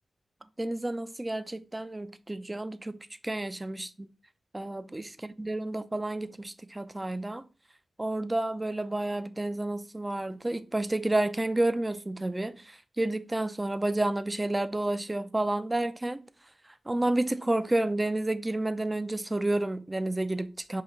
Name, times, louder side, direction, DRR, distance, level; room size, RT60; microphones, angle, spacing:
voice 1, 0.6-4.1 4.5-7.4 8.0-16.2 16.9-20.8, right 2 dB, 20° right, 0.4 m, -30 dB
4.7 x 2.7 x 3.8 m
wide cardioid pair, 80°, 0 cm